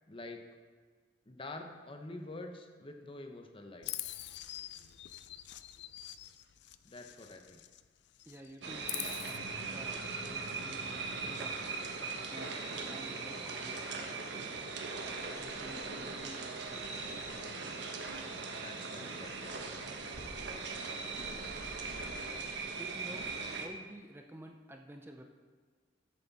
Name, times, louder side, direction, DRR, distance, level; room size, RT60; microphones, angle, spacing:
voice 1, 0.1-0.4 1.3-3.9 6.8-7.6 18.5-19.9, left 2 dB, 30° left, 4 dB, 0.9 m, -47 dB
Chirp tweet, 3.8-7.9 8.1-9.4, left 14 dB, 65° left, 0.4 m, -44 dB
voice 2, 8.2-12.6 12.9-14.6 15.4-17.1 22.8-25.2, right 1 dB, 15° right, 3 dB, 0.6 m, -52 dB
sound 1, 8.6-23.7, right 4 dB, 70° right, 1.2 m, -40 dB
13.5 x 7.6 x 4.1 m, 1.5 s
head